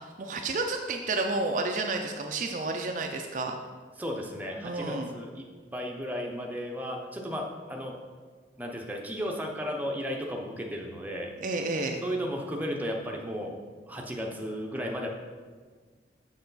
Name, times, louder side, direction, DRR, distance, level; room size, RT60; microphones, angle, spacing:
voice 1, 0.0-3.6 4.6-5.1 11.4-12.0, right 3 dB, 45° right, 3 dB, 0.4 m, -31 dB
voice 2, 4.0-5.5 5.7-8.0 8.6-11.3 12.0-13.6 13.9-15.1, equal, 10° right, 0 dB, 0.7 m, -34 dB
6.7 x 6.1 x 4.0 m, 1.5 s
head